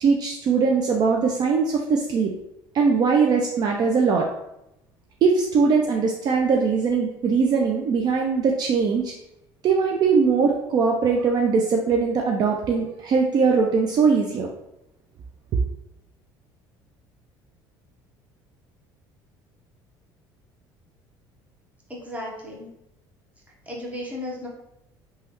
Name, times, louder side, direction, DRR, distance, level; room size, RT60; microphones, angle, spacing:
voice 1, 0.0-2.3 2.7-4.3 5.2-9.1 9.6-14.5, right 5 dB, 45° right, 0 dB, 0.4 m, -21 dB
voice 2, 21.9-22.7 23.7-24.5, left 1 dB, 15° right, -2 dB, 0.9 m, -34 dB
3.1 x 2.3 x 2.9 m, 0.84 s
supercardioid pair, 100°, 9 cm